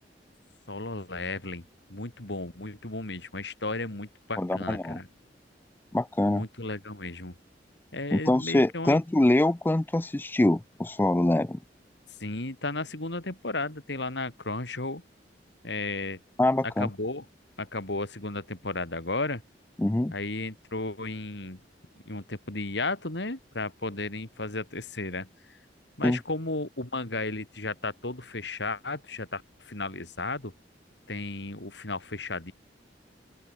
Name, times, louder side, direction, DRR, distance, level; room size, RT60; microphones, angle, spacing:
voice 1, 0.7-5.1 6.2-7.4 7.9-9.0 12.2-15.0 15.6-16.2 16.8-17.2 17.6-19.4 20.1-21.6 22.1-25.3 26.0-30.5 31.1-32.5, left 2 dB, 70° left, 3.3 m, -34 dB
voice 2, 4.4-5.0 5.9-6.4 8.1-11.6 16.4-16.9 19.8-20.1 26.0-26.2, left 1 dB, 10° left, 0.4 m, -24 dB
open air
head